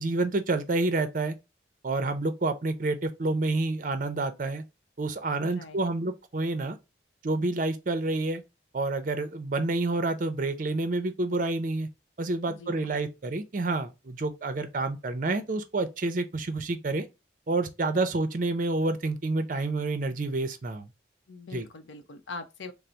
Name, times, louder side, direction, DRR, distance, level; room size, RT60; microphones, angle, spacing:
voice 1, 0.0-1.4 1.8-4.6 5.0-6.8 7.2-8.4 8.7-11.9 12.2-17.1 17.5-20.9 21.5-21.7, right 2 dB, 45° right, 0.5 m, -28 dB
voice 2, 5.4-5.8 12.5-13.0 21.3-22.7, left 3 dB, 90° left, 0.6 m, -42 dB
3.9 x 2.0 x 4.4 m
head